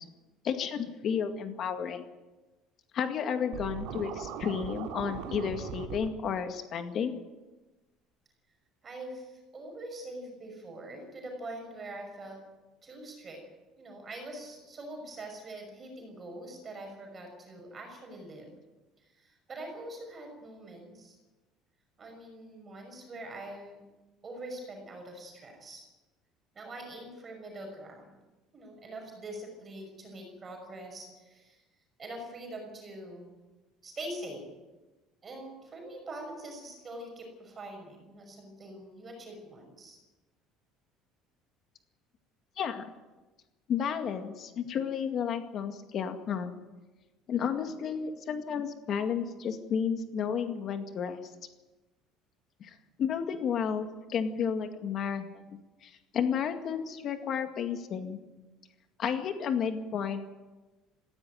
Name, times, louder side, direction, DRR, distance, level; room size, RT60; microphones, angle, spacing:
voice 1, 0.4-2.0 2.9-7.1 42.6-42.9 43.7-46.5 47.3-51.2 52.6-55.2 55.8-58.2 59.0-60.2, left 7 dB, 35° left, 6 dB, 2.0 m, -32 dB
Scratching (performance technique), 3.5-6.1, right 8 dB, 70° right, 2.3 m, -39 dB
voice 2, 8.8-12.4 12.8-13.4 13.8-18.5 19.1-21.2 22.0-23.8 24.2-25.9 26.5-28.1 28.5-31.6 32.0-33.3 33.8-34.5 35.2-40.0, right 1 dB, 20° right, 2 dB, 5.9 m, -44 dB
18.5 x 16.5 x 9.2 m, 1.1 s
cardioid pair, 170°, 0 cm